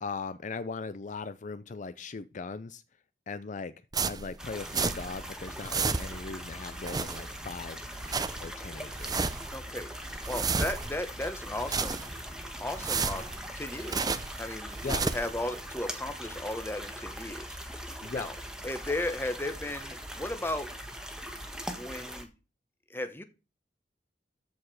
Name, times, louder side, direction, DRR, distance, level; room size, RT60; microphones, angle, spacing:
voice 1, 0.0-2.8 3.3-3.7 4.1-7.8 8.4-9.4 14.8-15.0 18.0-18.3, left 4 dB, 45° left, 0.5 m, -39 dB
sound 1, 3.9-5.2 5.5-6.3 6.7-7.5 7.8-8.5 8.9-9.6 9.9-11.0 11.5-12.3 12.7-14.4 14.7-15.4, right 4 dB, 20° right, 0.6 m, -32 dB
sound 2, 4.4-22.2, equal, 5° right, 1.5 m, -41 dB
voice 2, 9.5-9.9 10.3-12.0 12.6-14.1 14.4-17.6 18.1-18.3 18.6-20.7 21.8-22.3 22.9-23.2, left 1 dB, 15° left, 1.0 m, -35 dB
14.0 x 4.8 x 4.8 m
head